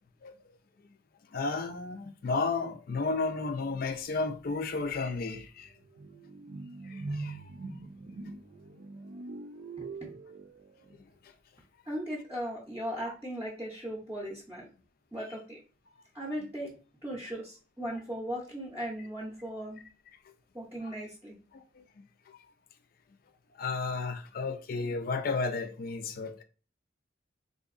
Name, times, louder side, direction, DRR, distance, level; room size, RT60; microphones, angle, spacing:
voice 1, 1.3-5.7 6.8-7.4 8.2-8.3 10.9-11.3 13.0-13.1 16.4-16.5 20.2-20.3 20.8-20.9 21.5-22.4 23.5-26.4, left 3 dB, 50° left, 0.4 m, -33 dB
sound 1, 4.4-4.5 4.8-11.0, right 3 dB, 65° right, 0.5 m, -42 dB
voice 2, 9.8-10.2 11.9-14.7 15.1-15.6 16.1-16.7 17.0-19.8 20.5-21.3, equal, 10° right, 0.6 m, -38 dB
3.8 x 2.7 x 2.5 m
head